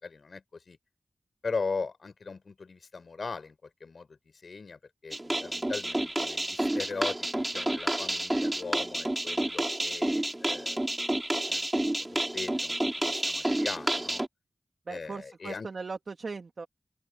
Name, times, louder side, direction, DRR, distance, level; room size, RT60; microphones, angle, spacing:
voice 1, 0.0-0.8 1.4-10.8 11.5-14.2 14.9-15.7, left 4 dB, 65° left, 5.7 m, -39 dB
sound 1, 5.1-14.3, right 1 dB, 20° right, 5.6 m, -30 dB
voice 2, 14.9-16.7, right 4 dB, 65° right, 2.6 m, -38 dB
open air
wide cardioid pair, 70°, 0 cm